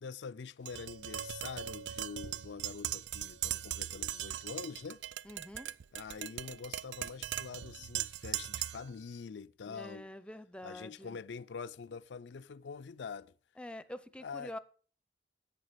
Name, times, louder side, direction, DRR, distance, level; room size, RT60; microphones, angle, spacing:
voice 1, 0.0-5.0 5.9-10.1 10.6-13.3 14.2-14.5, left 5 dB, 80° left, 0.4 m, -45 dB
Tap, 0.7-8.9, right 11 dB, 85° right, 0.4 m, -39 dB
voice 2, 5.2-5.7 9.7-11.2 13.6-14.6, left 1 dB, 5° left, 0.6 m, -46 dB
10.5 x 8.0 x 5.1 m
head